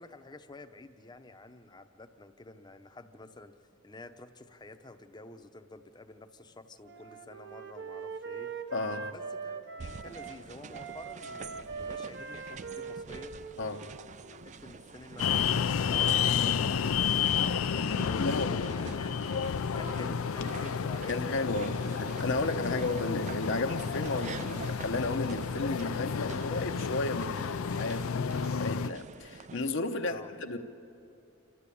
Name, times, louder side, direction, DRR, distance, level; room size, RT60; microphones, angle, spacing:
voice 1, 0.0-3.6 3.8-8.5 9.1-13.3 14.1-14.2 14.4-19.3 19.6-22.0 30.0-30.3, left 2 dB, 20° left, 0.8 m, -50 dB
Wind instrument woodwind instrument, 6.8-10.4 10.7-14.5, right 5 dB, 55° right, 0.9 m, -42 dB
voice 2, 8.7-9.1 13.6-13.9 18.2-18.6 20.0-20.1 21.1-30.6, left 2 dB, 65° left, 0.9 m, -33 dB
sound 1, 9.8-29.7, right 5 dB, 35° right, 0.4 m, -46 dB
city noise subway station, 15.2-28.9, left 7 dB, 80° left, 0.5 m, -31 dB
27.5 x 12.5 x 8.5 m
head